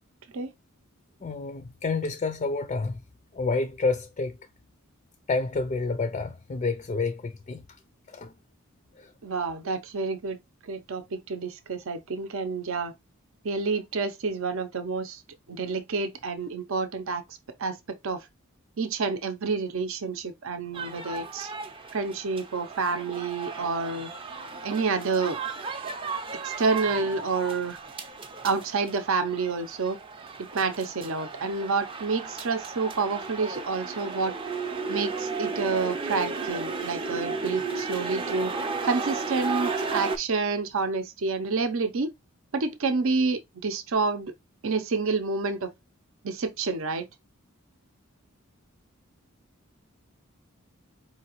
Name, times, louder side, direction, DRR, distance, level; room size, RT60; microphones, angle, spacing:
voice 1, 1.2-3.0 3.3-4.4 5.3-7.6 8.1-8.3 9.0-9.1, left 3 dB, 30° left, 0.4 m, -29 dB
voice 2, 9.2-10.4 10.6-12.9 13.4-15.2 15.5-17.2 17.6-18.3 18.8-21.5 21.9-24.1 24.6-25.4 26.4-27.8 28.4-30.0 30.5-34.3 34.9-38.5 38.8-42.1 42.5-44.3 44.6-45.7 46.2-47.1, right 4 dB, 65° right, 0.6 m, -28 dB
sound 1, 20.7-40.2, right 4 dB, 25° right, 0.5 m, -34 dB
4.8 x 2.8 x 3.0 m
head